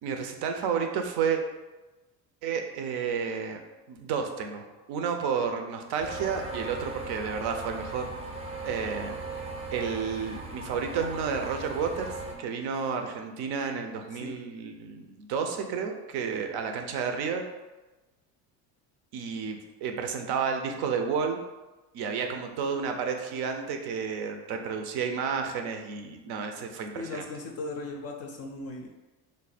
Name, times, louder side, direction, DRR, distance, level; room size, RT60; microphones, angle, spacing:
voice 1, 0.0-1.4 2.4-3.6 3.9-8.1 8.6-9.2 9.7-17.4 19.1-21.4 21.9-27.2, right 6 dB, 60° right, 5 dB, 0.7 m, -31 dB
sound 1, 6.0-12.4, right 2 dB, 15° right, 0.6 m, -38 dB
voice 2, 27.0-28.9, left 2 dB, 35° left, 2 dB, 0.4 m, -37 dB
3.3 x 2.1 x 4.1 m, 1.1 s
supercardioid pair, 90°, 46 cm